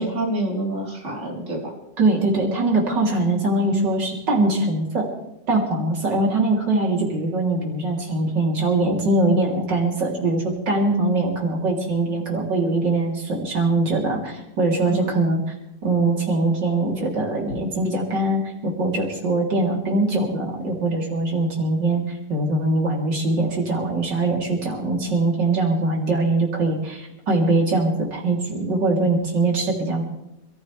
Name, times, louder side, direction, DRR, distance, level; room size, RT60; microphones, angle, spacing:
voice 1, 0.0-1.7 14.9-15.2, right 2 dB, 40° right, -4 dB, 4.2 m, -27 dB
voice 2, 2.0-5.1 5.5-15.4 15.8-22.0 22.3-30.0, right 2 dB, 80° right, -1 dB, 4.1 m, -22 dB
27.5 x 14.5 x 3.4 m, 0.85 s
omnidirectional pair, 1.9 m